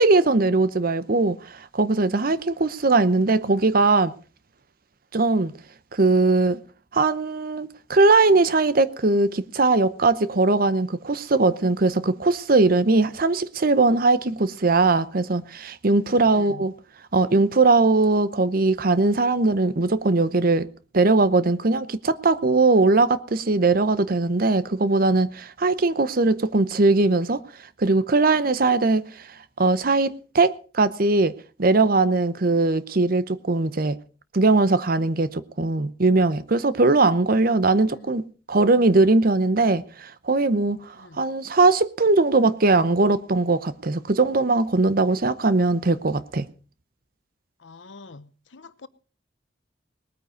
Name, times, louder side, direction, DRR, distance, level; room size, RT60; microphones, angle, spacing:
voice 1, 0.0-1.4 1.7-4.1 5.1-5.5 5.9-6.6 6.9-16.7 17.1-20.7 20.9-27.4 27.8-29.0 29.6-31.3 31.6-34.0 34.3-40.8 41.2-46.5, right 3 dB, 50° right, 0.8 m, -20 dB
voice 2, 16.1-16.7 37.7-38.1 41.0-41.2 47.6-48.9, left 3 dB, 80° left, 0.9 m, -45 dB
19.5 x 9.2 x 5.2 m
head